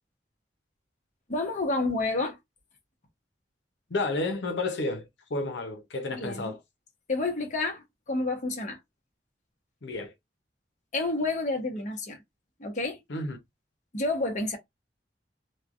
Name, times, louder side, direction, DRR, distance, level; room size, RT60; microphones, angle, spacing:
voice 1, 1.3-2.4 6.1-6.5 7.1-8.8 10.9-12.2 12.6-13.0 13.9-14.6, left 2 dB, 45° left, 0.9 m, -29 dB
voice 2, 3.9-6.6 9.8-10.1 13.1-13.4, left 2 dB, 85° left, 0.8 m, -31 dB
3.2 x 2.2 x 2.4 m
head